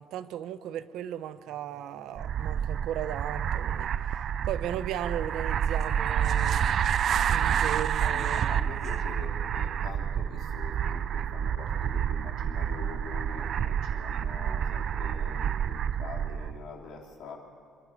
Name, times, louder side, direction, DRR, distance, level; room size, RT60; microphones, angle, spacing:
voice 1, 0.0-4.1 4.4-6.7 7.3-8.6, right 11 dB, 75° right, 13 dB, 0.8 m, -36 dB
sound 1, 2.2-16.6, right 9 dB, 45° right, 0.4 m, -29 dB
voice 2, 8.0-17.4, left 5 dB, 70° left, 0 dB, 3.3 m, -44 dB
26.0 x 11.5 x 8.9 m, 2.7 s
cardioid pair, 175°, 0 cm